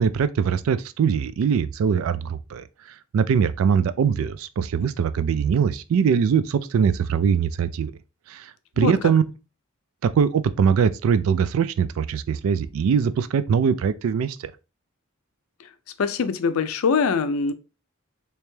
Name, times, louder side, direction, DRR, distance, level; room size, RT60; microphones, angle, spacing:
voice 1, 0.0-2.6 3.1-7.9 8.3-8.5 8.8-9.2 10.0-14.4, right 7 dB, 85° right, 0.3 m, -22 dB
voice 2, 16.0-17.5, left 5 dB, 90° left, 0.4 m, -23 dB
3.3 x 2.9 x 3.1 m
head